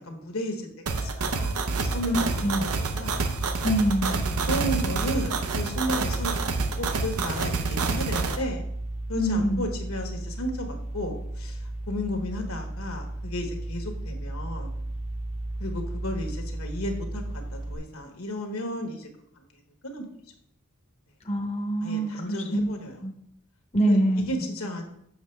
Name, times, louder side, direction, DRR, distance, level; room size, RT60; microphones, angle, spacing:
voice 1, 0.0-3.2 4.5-6.3 6.8-8.6 9.1-14.8 15.6-19.1 19.3-20.0 21.8-23.0 23.9-24.8, equal, 75° left, 3 dB, 1.3 m, -34 dB
sound 1, 0.9-17.8, right 1 dB, 30° right, 0.7 m, -34 dB
sound 2, 0.9-8.4, right 4 dB, 90° right, 0.8 m, -28 dB
voice 2, 2.1-2.6 3.6-4.3 9.1-9.7 21.2-22.7 23.0-23.1 23.7-24.4, right 1 dB, 30° left, 0 dB, 0.7 m, -25 dB
7.2 x 6.1 x 3.3 m, 0.72 s
head